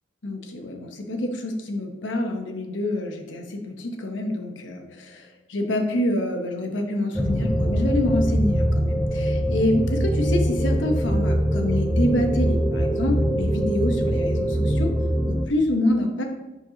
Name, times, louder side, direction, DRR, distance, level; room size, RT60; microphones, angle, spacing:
voice 1, 0.2-14.9 15.3-16.2, left 1 dB, 65° left, 3 dB, 1.0 m, -26 dB
sound 1, 7.2-15.5, equal, ahead, 0.3 m, -23 dB
10.5 x 4.3 x 2.8 m, 1.1 s
head